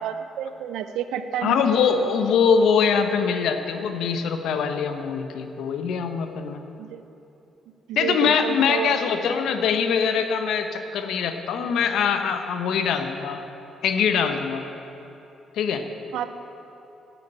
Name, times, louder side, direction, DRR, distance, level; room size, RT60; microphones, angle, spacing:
voice 1, 0.0-1.7 1.9-2.1 6.8-7.0 7.9-8.9 16.1-16.3, right 9 dB, 85° right, 10 dB, 0.7 m, -30 dB
voice 2, 1.4-6.6 8.0-13.4 13.8-14.6 15.6-15.8, left 6 dB, 80° left, 7 dB, 1.0 m, -23 dB
10.0 x 8.4 x 8.8 m, 2.9 s
cardioid pair, 90°, 0 cm